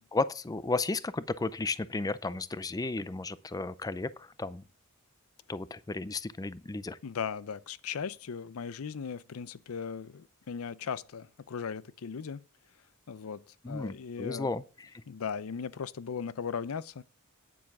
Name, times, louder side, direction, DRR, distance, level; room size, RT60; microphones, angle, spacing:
voice 1, 0.1-4.6 5.5-7.0 13.6-15.0, left 3 dB, 15° left, 0.4 m, -34 dB
voice 2, 7.0-12.4 13.1-14.5 15.1-17.0, left 6 dB, 80° left, 0.5 m, -38 dB
9.8 x 7.1 x 5.9 m
head